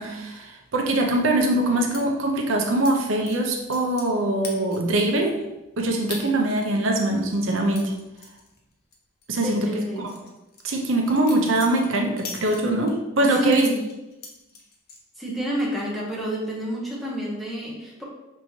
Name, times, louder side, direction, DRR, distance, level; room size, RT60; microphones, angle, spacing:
voice 1, 0.0-5.3 5.8-7.9 9.3-9.7 10.0-10.1 10.6-13.7, right 1 dB, 75° right, 1 dB, 0.6 m, -23 dB
sound 1, 1.9-2.0 2.8-3.0 3.3-4.2 4.4-5.0 5.4-5.5 6.1-6.2 6.6-9.0 9.2-9.4 9.8-13.0 13.5-15.0 15.4-15.8 16.1-16.5, left 4 dB, 55° left, 0.8 m, -40 dB
voice 2, 9.3-10.1 13.3-13.8 15.2-18.0, equal, ahead, -5 dB, 0.9 m, -29 dB
5.4 x 3.1 x 2.7 m, 0.98 s
head